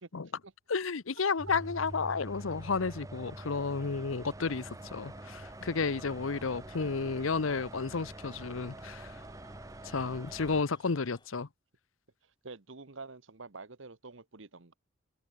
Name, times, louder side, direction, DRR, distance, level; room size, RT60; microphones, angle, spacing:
voice 1, 0.7-9.2 9.8-11.5, left 4 dB, 80° left, 0.8 m, -32 dB
sound 1, 1.4-10.6, right 1 dB, 15° right, 0.7 m, -45 dB
sound 2, 4.5-11.3, left 3 dB, 20° left, 4.1 m, -63 dB
voice 2, 6.7-7.0 12.2-14.7, right 3 dB, 70° right, 1.2 m, -48 dB
head